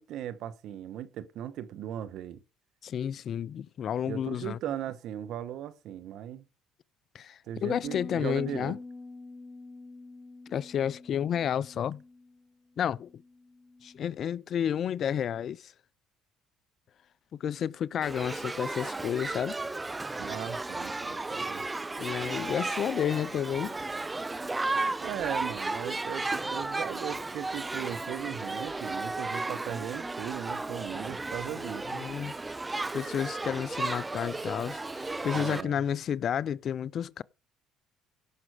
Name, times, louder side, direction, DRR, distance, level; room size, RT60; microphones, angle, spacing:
voice 1, 0.0-2.4 4.1-6.5 7.5-8.8 20.2-21.6 25.0-32.0 35.3-35.8, right 11 dB, 65° right, 1.0 m, -38 dB
voice 2, 2.8-4.6 7.1-8.8 10.5-12.0 12.8-13.2 13.8-15.7 17.4-19.5 22.0-23.8 31.9-32.3 32.9-37.2, left 9 dB, 55° left, 0.4 m, -31 dB
sound 1, 7.8-14.1, left 3 dB, 15° left, 0.8 m, -46 dB
Shout / Human group actions, 18.0-35.6, right 2 dB, 20° right, 0.6 m, -34 dB
16.5 x 6.1 x 5.0 m
supercardioid pair, 70°, 0 cm